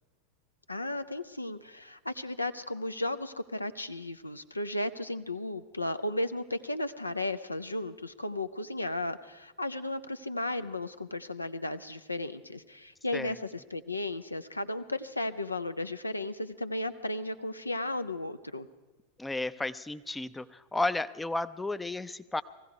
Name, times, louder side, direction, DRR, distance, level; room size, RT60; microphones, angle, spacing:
voice 1, 0.7-18.7, left 1 dB, 85° left, 11 dB, 0.5 m, -35 dB
voice 2, 19.2-22.4, left 2 dB, 10° left, 13 dB, 0.4 m, -33 dB
20.0 x 15.0 x 4.7 m, 1.2 s
figure-of-eight pair, 90°, 0 cm